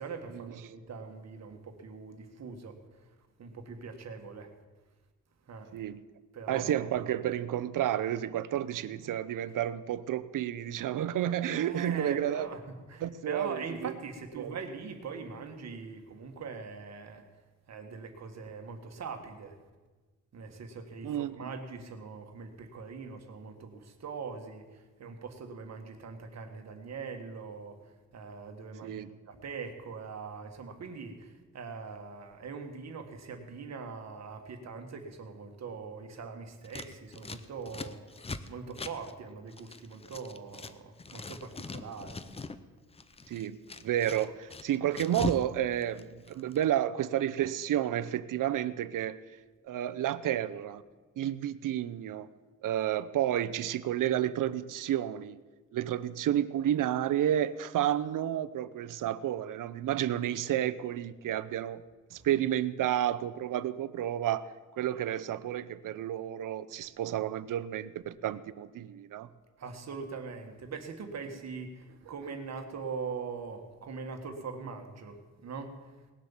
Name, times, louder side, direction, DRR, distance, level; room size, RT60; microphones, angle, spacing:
voice 1, 0.0-2.8 3.0-3.1 3.4-4.5 5.5-5.8 6.3-6.9 11.5-17.2 17.7-19.6 20.3-38.2 38.5-42.2 62.1-62.3 69.6-75.8, right 5 dB, 55° right, 5 dB, 1.7 m, -42 dB
voice 2, 5.7-6.0 6.5-12.5 13.0-13.9 14.4-14.6 21.0-21.5 28.8-29.1 43.3-43.6 43.8-49.2 49.7-50.8 51.2-52.3 52.6-55.4 55.7-61.8 62.1-64.5 64.8-69.3, right 11 dB, 80° right, 13 dB, 0.7 m, -31 dB
Scissors, 36.6-40.7 41.0-42.6 42.9-45.5 45.7-46.6, left 4 dB, 20° left, 0.6 m, -41 dB
19.0 x 7.6 x 7.2 m, 1.3 s
wide cardioid pair, 155°, 31 cm